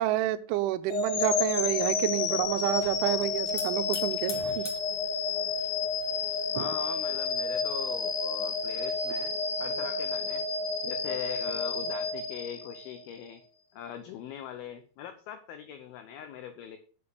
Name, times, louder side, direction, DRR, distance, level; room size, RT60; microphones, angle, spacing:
voice 1, 0.0-4.7 6.6-6.7, right 14 dB, 85° right, 12 dB, 3.1 m, -29 dB
sound 1, 0.9-13.0, left 4 dB, 70° left, 3.2 m, -30 dB
Hiss / Fire, 1.9-8.7, left 5 dB, 50° left, 2.0 m, -48 dB
voice 2, 4.3-4.7 5.6-5.8 6.5-9.3 9.6-10.5 10.8-13.4 13.7-16.8, left 9 dB, 85° left, 9 dB, 2.1 m, -41 dB
6.9 x 6.9 x 6.8 m, 0.41 s
omnidirectional pair, 5.4 m